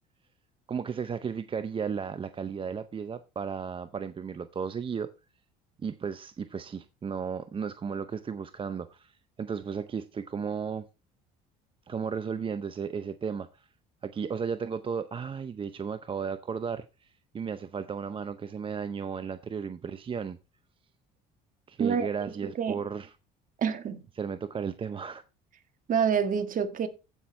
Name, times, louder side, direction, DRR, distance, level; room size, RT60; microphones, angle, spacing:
voice 1, 0.7-5.1 5.8-10.9 11.9-13.7 14.0-20.4 21.7-23.1 24.2-25.2, right 6 dB, 30° right, 0.6 m, -34 dB
voice 2, 21.8-22.1 22.4-22.8 23.6-24.0 25.9-26.9, right 7 dB, 45° right, 1.6 m, -27 dB
15.5 x 6.0 x 3.2 m
supercardioid pair, 95°, 19 cm